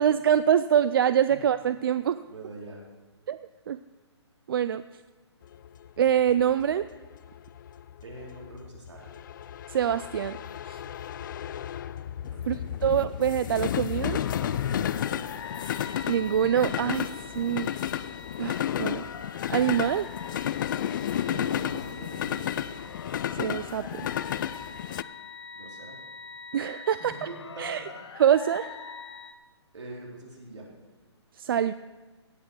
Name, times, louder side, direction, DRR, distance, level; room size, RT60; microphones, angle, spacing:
voice 1, 0.0-2.2 3.3-3.4 3.7-3.8 4.5-4.8 6.0-6.9 9.7-10.4 10.7-10.8 12.5-14.2 16.1-17.1 17.3-17.7 18.4-19.0 19.5-20.1 23.3-24.1 26.5-27.3 27.6-27.8 28.2-28.8 31.3-31.7, right 9 dB, 50° right, 14 dB, 0.4 m, -25 dB
voice 2, 2.2-2.8 8.0-9.1 12.3-12.8 14.8-15.1 21.3-22.6 25.5-26.0 27.0-28.0 29.7-30.7, right 2 dB, 80° right, -2 dB, 3.6 m, -43 dB
sound 1, 5.5-25.0, left 10 dB, 45° left, 0.4 m, -32 dB
sound 2, 14.0-29.3, left 5 dB, 60° left, 1.3 m, -43 dB
17.0 x 5.7 x 6.3 m, 1.3 s
hypercardioid pair, 145°, 15 cm